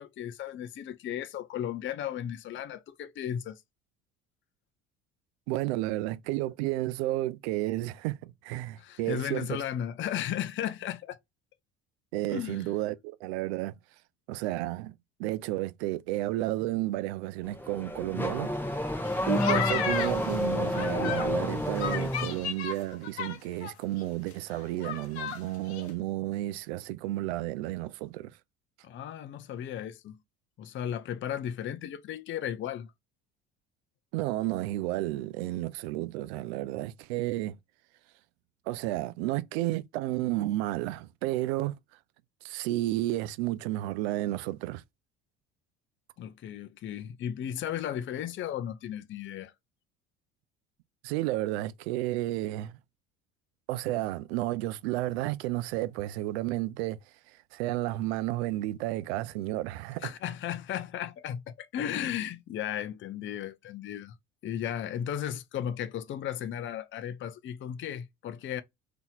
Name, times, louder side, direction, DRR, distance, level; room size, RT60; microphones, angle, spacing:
voice 1, 0.0-3.6 8.8-11.2 12.3-12.7 19.6-19.7 28.8-30.2 30.6-32.9 46.2-49.5 60.0-64.1 64.4-68.6, left 10 dB, 40° left, 0.5 m, -35 dB
voice 2, 5.5-9.6 12.1-13.7 14.3-28.3 34.1-37.6 38.7-41.8 42.4-44.8 51.0-52.8 53.7-57.0 57.5-60.1, right 16 dB, 75° right, 0.5 m, -32 dB
Car / Accelerating revving vroom, 17.4-22.5, left 1 dB, 5° left, 1.0 m, -30 dB
sound 1, 19.0-21.3 21.8-23.7 24.0-24.1 24.3-25.4 25.7-25.9, left 8 dB, 90° left, 0.7 m, -34 dB
3.9 x 2.9 x 2.3 m
hypercardioid pair, 65°, 32 cm